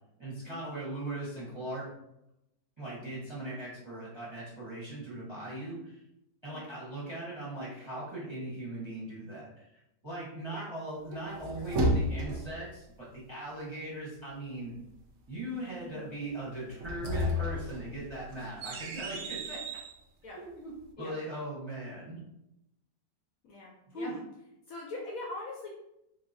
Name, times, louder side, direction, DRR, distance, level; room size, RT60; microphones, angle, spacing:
voice 1, 0.2-1.8 2.8-6.0 6.4-9.7 10.0-14.7 15.3-19.6 20.3-22.2 23.9-24.2, right 1 dB, 20° right, -7 dB, 0.8 m, -39 dB
sound 1, 11.1-12.6 16.7-19.9, equal, 65° right, 0.7 m, -32 dB
voice 2, 11.2-11.9 15.8-16.1 20.2-20.5 21.0-21.2 23.4-24.1 24.7-25.7, left 2 dB, 65° left, -2 dB, 0.9 m, -43 dB
3.9 x 2.8 x 2.6 m, 0.84 s
omnidirectional pair, 1.8 m